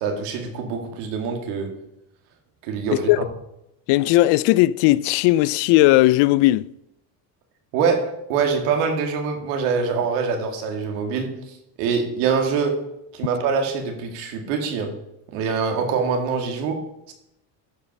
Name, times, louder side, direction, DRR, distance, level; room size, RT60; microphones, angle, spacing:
voice 1, 0.0-1.7 2.6-3.2 7.7-11.4 11.8-12.8 13.1-15.0 15.3-16.8 17.1-17.2, right 5 dB, 80° right, 2.3 m, -24 dB
voice 2, 3.9-6.7, left 17 dB, 65° left, 0.5 m, -17 dB
12.0 x 5.2 x 5.3 m
supercardioid pair, 90°, 46 cm